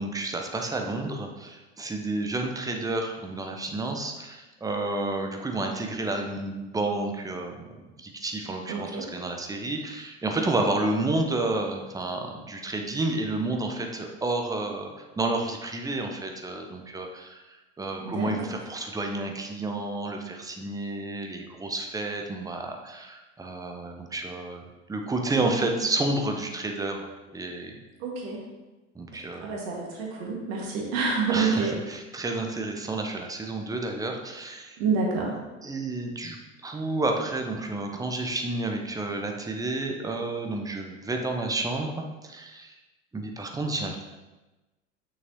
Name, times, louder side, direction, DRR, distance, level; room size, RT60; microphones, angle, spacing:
voice 1, 0.0-7.6 8.0-14.9 15.2-24.6 24.9-27.1 27.3-27.7 28.9-29.5 31.3-34.8 35.6-36.4 36.6-42.7 43.1-44.0, right 2 dB, 10° right, 3 dB, 0.8 m, -30 dB
voice 2, 8.7-9.0 18.0-18.6 25.4-25.5 28.0-28.4 29.1-31.7 34.8-35.4, right 4 dB, 55° right, -2 dB, 1.8 m, -28 dB
6.2 x 6.1 x 2.9 m, 1.1 s
figure-of-eight pair, 70°, 37 cm